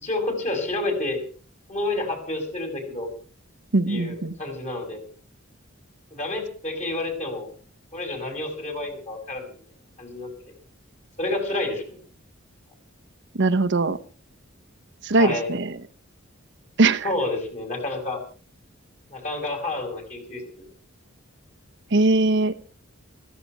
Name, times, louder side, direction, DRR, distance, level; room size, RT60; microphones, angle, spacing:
voice 1, 0.0-1.2 1.7-3.1 3.9-5.0 6.2-7.5 7.9-9.5 10.0-10.3 11.2-12.0 15.2-15.5 17.0-18.2 19.1-20.6, left 2 dB, 35° left, 4 dB, 6.0 m, -29 dB
voice 2, 3.7-4.3 13.4-14.0 15.0-15.7 16.8-17.1 21.9-22.5, right 2 dB, 60° right, 8 dB, 0.9 m, -20 dB
15.5 x 15.0 x 5.9 m, 0.41 s
head